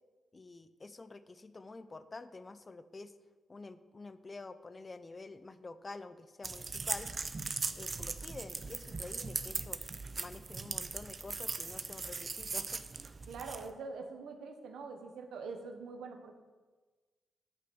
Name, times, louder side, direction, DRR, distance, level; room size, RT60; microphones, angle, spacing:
voice 1, 0.3-3.1 3.5-7.1 7.8-9.9 10.2-12.8, left 3 dB, 35° left, 13 dB, 0.7 m, -48 dB
sound 1, 6.4-13.7, right 4 dB, 45° right, 0.7 m, -39 dB
voice 2, 13.3-16.3, right 4 dB, 80° right, 5 dB, 1.3 m, -44 dB
9.6 x 5.6 x 7.9 m, 1.3 s
supercardioid pair, 50°, 0 cm